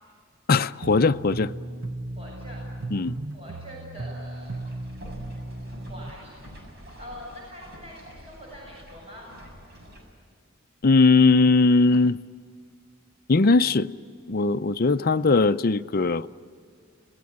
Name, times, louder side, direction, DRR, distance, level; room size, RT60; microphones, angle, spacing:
voice 1, 0.5-1.5 2.9-3.2 10.8-12.2 13.3-13.9 14.3-16.3, left 3 dB, 45° left, 0.6 m, -19 dB
sound 1, 0.8-6.1, right 2 dB, 70° right, 1.2 m, -36 dB
voice 2, 2.2-2.6 3.3-4.6 5.8-6.3 7.0-9.3, equal, 30° right, 7.6 m, -43 dB
sound 2, 4.2-10.0, equal, 55° right, 6.9 m, -47 dB
30.0 x 20.0 x 8.7 m
head